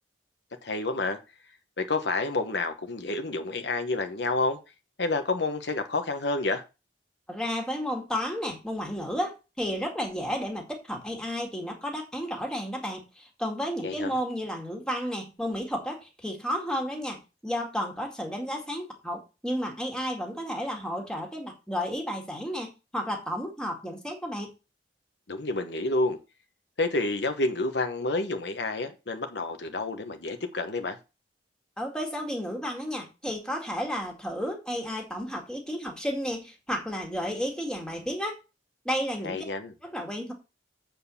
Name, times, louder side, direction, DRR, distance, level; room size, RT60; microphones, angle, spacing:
voice 1, 0.6-1.2 1.8-4.6 5.0-6.6 13.8-14.1 25.3-26.2 26.8-31.0 39.2-39.7, left 2 dB, 70° left, 1.1 m, -29 dB
voice 2, 7.3-24.5 31.8-38.4 38.8-39.4 39.8-40.3, equal, 5° left, 2.0 m, -32 dB
7.7 x 4.6 x 7.0 m
head